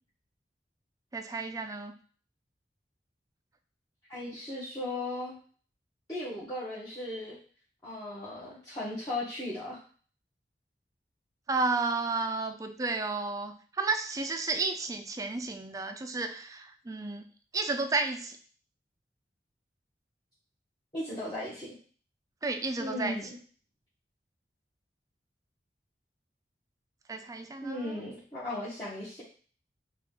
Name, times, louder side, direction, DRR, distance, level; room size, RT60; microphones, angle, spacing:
voice 1, 1.1-1.9 11.5-17.2 17.5-18.4 22.4-23.2 27.1-28.0, right 3 dB, 20° right, 7 dB, 0.4 m, -32 dB
voice 2, 4.1-5.3 6.1-7.4 7.8-9.8 20.9-21.7 22.8-23.4 27.6-29.2, left 1 dB, 20° left, -11 dB, 1.2 m, -36 dB
4.7 x 2.4 x 3.6 m, 0.43 s
head